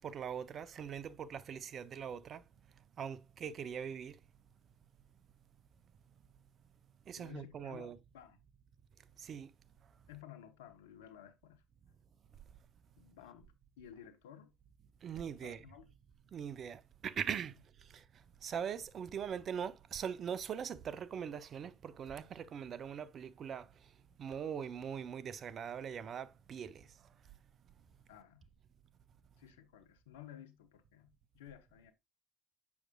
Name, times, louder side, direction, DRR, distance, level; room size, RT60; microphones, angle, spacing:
voice 1, 0.0-2.4 3.0-4.2 7.1-8.0 9.2-9.5 15.0-15.7 16.3-23.9 24.2-26.9, right 8 dB, 55° right, 0.6 m, -42 dB
voice 2, 7.2-8.4 10.1-11.6 13.0-13.5 13.8-14.5 15.4-15.9 28.1-28.5 29.4-31.9, left 10 dB, 85° left, 0.7 m, -54 dB
7.2 x 6.0 x 2.3 m
hypercardioid pair, 60°, 0 cm